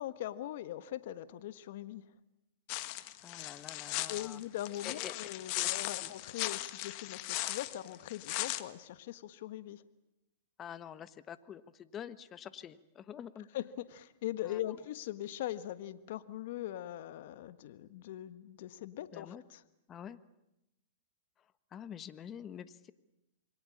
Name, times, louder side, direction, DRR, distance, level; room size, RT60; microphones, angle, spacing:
voice 1, 0.0-2.1 4.1-9.8 13.5-19.6, left 13 dB, 65° left, 13 dB, 1.5 m, -41 dB
sound 1, 2.7-8.6, left 18 dB, 50° left, 1.7 m, -38 dB
voice 2, 3.2-4.4 4.8-5.1 5.5-5.7 6.0-6.1 10.6-13.5 14.4-14.7 19.1-19.4 19.9-20.2 21.7-22.9, left 9 dB, 25° left, 14 dB, 1.3 m, -47 dB
28.0 x 23.5 x 8.7 m, 0.87 s
hypercardioid pair, 125°, 0 cm